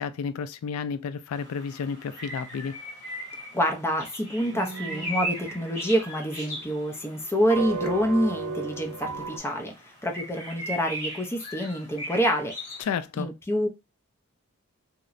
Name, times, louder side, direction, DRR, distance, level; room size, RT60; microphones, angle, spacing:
voice 1, 0.0-2.8 12.8-13.3, left 6 dB, 70° left, 0.3 m, -31 dB
sound 1, 1.3-12.8, equal, 35° left, 1.6 m, -39 dB
voice 2, 3.5-9.7 10.0-12.5 13.2-13.7, equal, 10° left, 0.5 m, -27 dB
sound 2, 4.4-6.4 7.5-9.4, right 4 dB, 90° right, 0.5 m, -35 dB
2.8 x 2.0 x 2.4 m
head